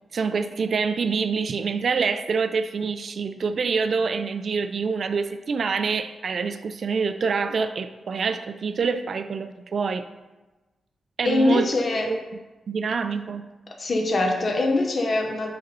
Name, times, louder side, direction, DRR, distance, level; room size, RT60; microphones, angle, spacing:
voice 1, 0.1-10.1 11.2-12.2 12.7-13.4, right 5 dB, 55° right, 10 dB, 0.3 m, -26 dB
voice 2, 11.2-12.1 13.8-15.5, left 2 dB, 45° left, 1 dB, 0.9 m, -23 dB
6.7 x 4.0 x 5.2 m, 1.1 s
wide cardioid pair, 120°, 0 cm